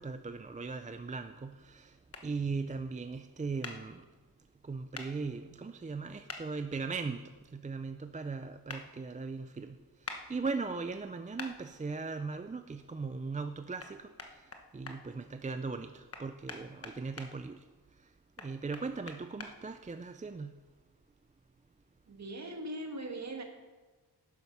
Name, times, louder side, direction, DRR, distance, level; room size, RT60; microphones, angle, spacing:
voice 1, 0.0-2.0 2.2-4.1 4.6-17.6 18.0-18.1 18.4-20.6, right 4 dB, 20° right, 8 dB, 0.4 m, -39 dB
sound 1, 2.1-2.2 3.6-3.8 4.9-5.1 6.3-6.4 8.7-8.8 10.0-10.2 11.4-11.5 13.8-13.9 14.2-15.0 16.1-17.3 18.4-19.5, left 3 dB, 35° left, 1.2 m, -43 dB
voice 2, 22.1-23.4, right 1 dB, 40° right, 3 dB, 1.7 m, -40 dB
11.5 x 9.5 x 5.9 m, 1.3 s
wide cardioid pair, 170°, 41 cm